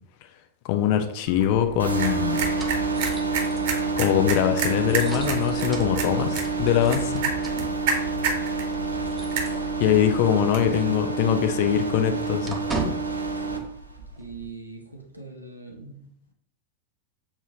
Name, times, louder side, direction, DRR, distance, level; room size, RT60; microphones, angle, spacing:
voice 1, 0.6-2.4 4.0-7.0 9.8-12.6, left 10 dB, 45° left, 7 dB, 0.5 m, -23 dB
sound 1, 1.3-10.8, right 4 dB, 50° right, 1.0 m, -32 dB
sound 2, 1.5-10.2 10.5-10.6 11.0-14.5, right 3 dB, 15° right, 0.9 m, -39 dB
sound 3, 1.8-13.6, right 4 dB, 85° right, 0.6 m, -28 dB
voice 2, 6.9-7.4 13.3-13.7 14.0-16.1, right 1 dB, 90° left, 1 dB, 0.9 m, -41 dB
7.0 x 2.7 x 2.7 m, 0.71 s
figure-of-eight pair, 90°, 0 cm